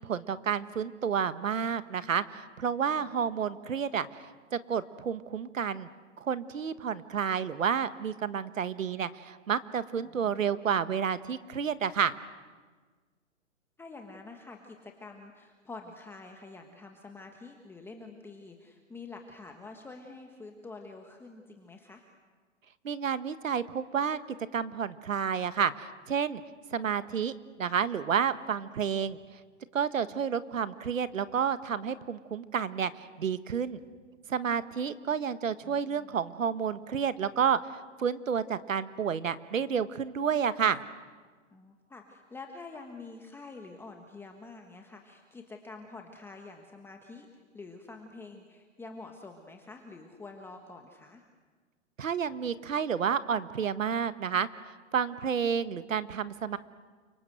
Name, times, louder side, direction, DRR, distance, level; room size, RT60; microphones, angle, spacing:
voice 1, 0.0-4.1 4.5-5.9 6.2-12.1 22.8-24.2 24.5-26.4 26.7-29.2 29.7-33.8 34.3-40.8 52.0-54.5 54.9-56.6, right 7 dB, 85° right, 13 dB, 1.6 m, -30 dB
voice 2, 10.0-10.5 13.8-22.0 30.1-30.2 35.6-36.2 41.5-51.2, left 3 dB, 5° left, 3 dB, 1.4 m, -47 dB
29.5 x 25.5 x 7.9 m, 1.4 s
hypercardioid pair, 145°, 38 cm